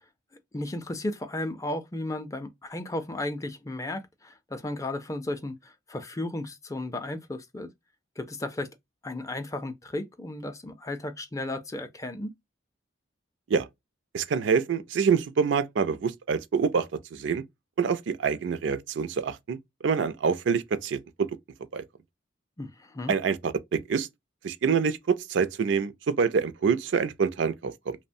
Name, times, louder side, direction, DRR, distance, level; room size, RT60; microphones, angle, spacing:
voice 1, 0.5-7.7 8.2-8.7 9.0-12.3 22.6-23.1, left 1 dB, 15° left, 0.4 m, -34 dB
voice 2, 14.1-17.4 17.8-21.3 21.7-21.8 23.1-24.1 24.4-28.0, right 6 dB, 75° right, 0.4 m, -26 dB
3.0 x 2.1 x 2.5 m
head